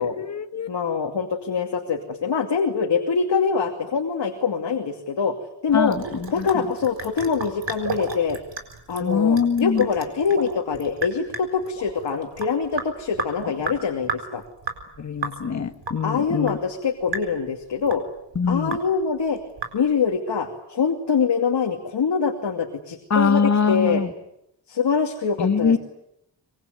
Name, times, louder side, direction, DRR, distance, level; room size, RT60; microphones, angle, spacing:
voice 1, 0.0-0.7 5.7-6.6 9.0-9.9 15.0-16.6 18.3-18.8 23.1-24.1 25.4-25.8, left 6 dB, 40° left, 7 dB, 1.7 m, -23 dB
voice 2, 0.7-5.4 5.6-6.0 6.3-8.4 8.9-14.4 16.0-18.0 18.5-19.4 19.7-24.0 24.7-25.7, left 6 dB, 65° left, 2 dB, 2.7 m, -24 dB
Sink (filling or washing) / Drip, 5.7-20.2, right 5 dB, 75° right, 4.3 m, -35 dB
sound 1, 6.6-7.1 7.7-8.2 8.5-8.6 9.0-10.0 10.3-10.8 11.7-12.5 13.4-13.5, right 3 dB, 35° right, 4.9 m, -36 dB
25.5 x 22.5 x 9.4 m, 0.79 s
wide cardioid pair, 155°, 45 cm